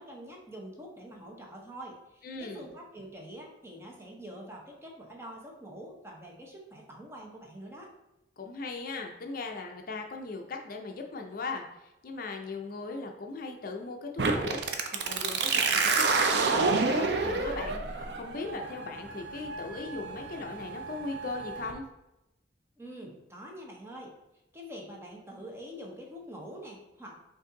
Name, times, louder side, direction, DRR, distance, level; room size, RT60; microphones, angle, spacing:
voice 1, 0.0-7.9 22.8-24.1 24.5-27.1, equal, 15° right, -1 dB, 0.8 m, -45 dB
voice 2, 2.2-2.6 8.4-14.6 15.0-15.4 15.7-17.8 18.1-21.8, left 3 dB, 50° left, 3 dB, 0.5 m, -38 dB
sound 1, 14.2-21.7, right 4 dB, 60° right, 0.5 m, -29 dB
5.4 x 2.6 x 3.8 m, 0.95 s
head